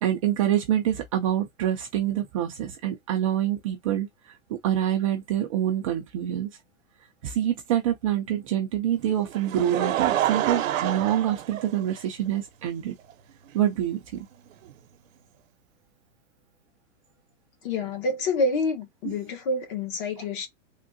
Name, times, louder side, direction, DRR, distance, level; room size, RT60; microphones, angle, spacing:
voice 1, 0.0-6.5 7.2-12.9 13.5-14.3, right 11 dB, 30° right, 0.3 m, -26 dB
Laughter, 9.0-12.3 13.1-13.2 14.7-14.8, right 12 dB, 85° right, 0.7 m, -27 dB
voice 2, 17.6-20.5, left 3 dB, 45° left, 1.0 m, -27 dB
3.5 x 2.1 x 2.5 m
supercardioid pair, 150°, 39 cm